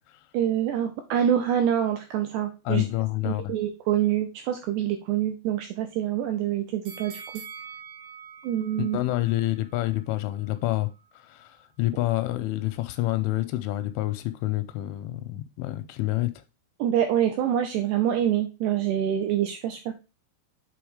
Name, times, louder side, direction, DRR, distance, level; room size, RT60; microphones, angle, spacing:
voice 1, 0.3-2.8 3.3-7.2 8.4-9.0 16.8-19.9, right 10 dB, 80° right, 2.4 m, -26 dB
voice 2, 2.7-3.4 8.8-10.9 11.2-16.3, left 17 dB, 85° left, 3.0 m, -28 dB
sound 1, 6.8-9.9 10.4-10.5, right 6 dB, 60° right, 1.7 m, -44 dB
7.9 x 3.4 x 4.9 m
omnidirectional pair, 5.5 m